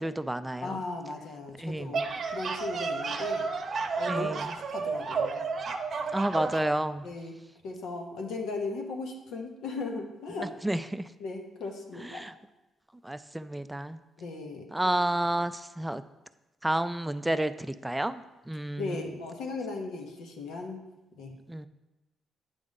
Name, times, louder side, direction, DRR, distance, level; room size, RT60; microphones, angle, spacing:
voice 1, 0.0-0.8 1.6-2.0 4.1-4.5 6.1-7.1 10.6-11.1 12.0-12.3 13.0-14.0 14.7-16.0 16.6-19.1 21.5-21.7, right 1 dB, 10° right, 12 dB, 0.4 m, -30 dB
voice 2, 0.6-3.5 4.0-5.4 7.0-7.4 7.6-10.5 11.2-12.2 14.2-15.0 18.8-20.8 21.1-21.3, left 3 dB, 80° left, 3 dB, 1.1 m, -37 dB
sound 1, 1.7-6.7, right 4 dB, 50° right, 0.7 m, -32 dB
8.8 x 3.7 x 5.3 m, 1.0 s
cardioid pair, 90°, 0 cm